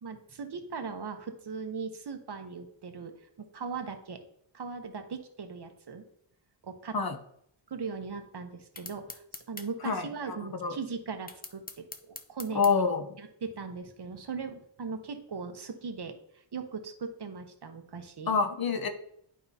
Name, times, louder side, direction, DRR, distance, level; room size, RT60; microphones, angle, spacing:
voice 1, 0.0-3.1 3.4-4.2 4.5-6.0 6.6-7.0 7.7-12.6 13.2-18.3, right 5 dB, 55° right, 7 dB, 0.9 m, -39 dB
sound 1, 8.8-9.7 11.3-12.7, left 3 dB, 20° left, 0.5 m, -43 dB
voice 2, 12.5-13.1 18.3-18.9, left 5 dB, 45° left, 7 dB, 0.8 m, -26 dB
11.0 x 4.6 x 2.8 m, 0.70 s
wide cardioid pair, 120°, 49 cm